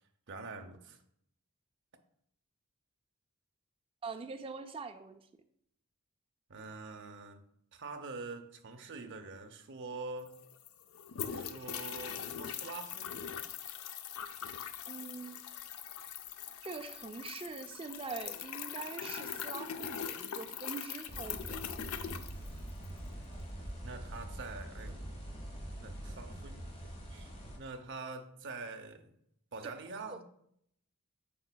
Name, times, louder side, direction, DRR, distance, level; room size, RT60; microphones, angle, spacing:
voice 1, 0.3-1.0 6.5-7.4 7.7-10.4 11.3-13.5 22.0-22.2 23.8-25.0 25.8-29.1 29.5-30.2, right 3 dB, 55° right, 0.7 m, -45 dB
voice 2, 4.0-5.3 14.9-15.4 16.6-21.7 29.6-29.7 30.1-30.2, right 4 dB, 25° right, 0.3 m, -43 dB
sound 1, 9.9-10.0 10.2-23.0, left 8 dB, 75° left, 0.4 m, -42 dB
sound 2, 21.1-27.6, right 1 dB, 30° left, 1.3 m, -44 dB
8.4 x 5.9 x 2.2 m
head